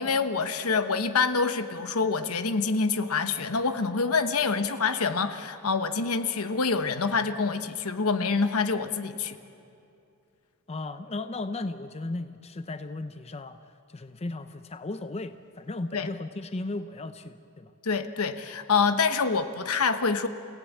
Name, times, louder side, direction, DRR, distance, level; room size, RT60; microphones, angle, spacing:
voice 1, 0.0-9.4 15.9-16.1 17.8-20.3, left 4 dB, 70° left, 9 dB, 1.0 m, -26 dB
voice 2, 10.7-13.6 13.9-17.7, left 2 dB, 30° left, 10 dB, 0.6 m, -35 dB
29.0 x 16.5 x 8.2 m, 2.6 s
head